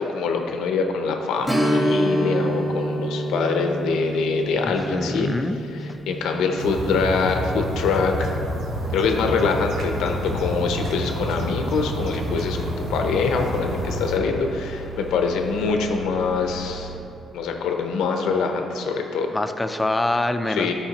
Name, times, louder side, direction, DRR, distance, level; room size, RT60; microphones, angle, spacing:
voice 1, 0.0-5.3 6.1-8.3 8.9-12.6 12.9-16.9 17.3-19.3 20.5-20.7, left 4 dB, 90° left, 3 dB, 0.7 m, -24 dB
Strum, 1.4-10.6 11.0-11.1 13.6-13.8 14.2-14.3, equal, 5° right, 1.4 m, -28 dB
voice 2, 4.6-5.6 19.3-20.7, left 2 dB, 15° left, 8 dB, 0.5 m, -25 dB
sound 1, 6.6-14.2, equal, 85° right, 1.2 m, -29 dB
sound 2, 8.8-17.0, right 2 dB, 30° right, 1.7 m, -39 dB
13.0 x 5.0 x 2.9 m, 2.8 s
cardioid pair, 90°, 0 cm